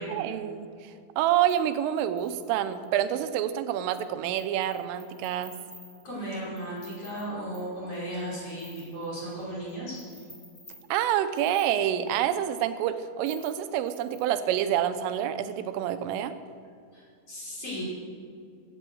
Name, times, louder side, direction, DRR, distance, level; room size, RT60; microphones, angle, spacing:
voice 1, 0.1-5.5 10.9-16.3, right 11 dB, 85° right, 10 dB, 3.3 m, -27 dB
sound 1, 1.5-2.9 3.9-4.1 4.4-9.7 9.9-12.3 13.2-14.5, equal, 10° left, 4.4 m, -52 dB
voice 2, 6.0-10.2 16.9-17.8, right 1 dB, 30° left, -6 dB, 5.8 m, -36 dB
15.5 x 9.6 x 7.8 m, 2.3 s
omnidirectional pair, 5.6 m